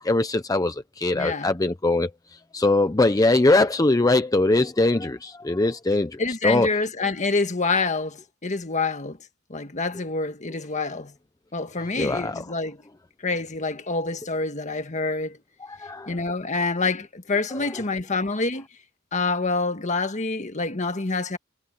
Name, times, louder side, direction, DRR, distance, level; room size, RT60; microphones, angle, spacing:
voice 1, 0.0-2.1 2.5-6.7 12.0-12.4 15.7-16.1, left 2 dB, 20° left, 0.6 m, -21 dB
voice 2, 1.1-1.5 6.2-9.2 9.5-11.1 11.5-12.8 13.2-15.4 16.1-18.7 19.1-21.4, left 3 dB, 35° left, 1.6 m, -27 dB
head